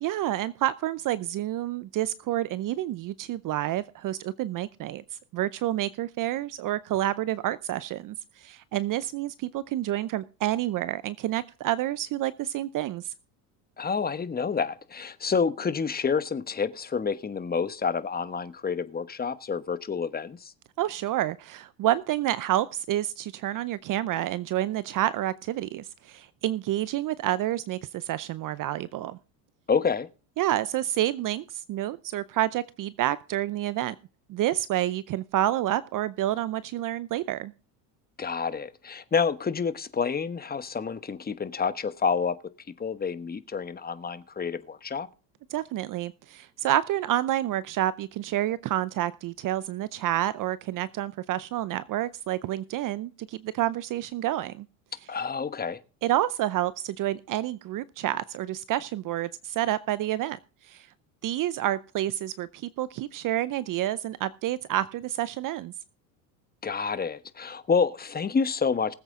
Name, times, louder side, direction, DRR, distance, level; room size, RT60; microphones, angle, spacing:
voice 1, 0.0-5.0 5.3-13.1 20.8-29.2 30.4-33.9 34.3-37.5 45.5-54.7 56.0-60.4 60.6-60.9 61.2-65.7, right 13 dB, 45° right, 0.6 m, -29 dB
voice 2, 13.8-20.5 29.7-30.1 38.2-42.4 42.8-45.1 55.1-55.8 66.6-68.9, left 5 dB, 20° left, 1.1 m, -28 dB
19.5 x 8.0 x 3.7 m
hypercardioid pair, 80°, 47 cm